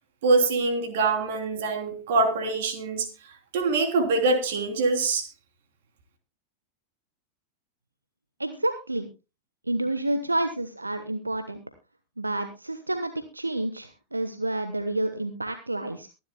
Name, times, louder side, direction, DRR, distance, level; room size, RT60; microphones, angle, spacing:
voice 1, 0.2-3.1 3.5-5.3, right 3 dB, 55° right, 6 dB, 3.1 m, -24 dB
voice 2, 8.4-9.1 9.7-11.6 12.2-16.1, right 1 dB, 85° right, 9 dB, 1.1 m, -29 dB
23.0 x 11.0 x 2.2 m, 0.28 s
figure-of-eight pair, 90°, 0 cm